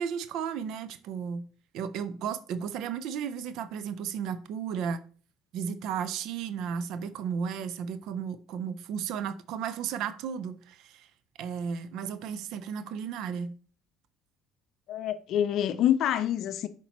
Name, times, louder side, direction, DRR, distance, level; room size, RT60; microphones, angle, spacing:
voice 1, 0.0-1.5 1.7-5.0 5.5-11.1 11.4-13.5, right 7 dB, 70° right, 0.5 m, -34 dB
voice 2, 14.9-16.7, left 10 dB, 60° left, 0.5 m, -26 dB
7.0 x 4.5 x 3.0 m
supercardioid pair, 80°, 0 cm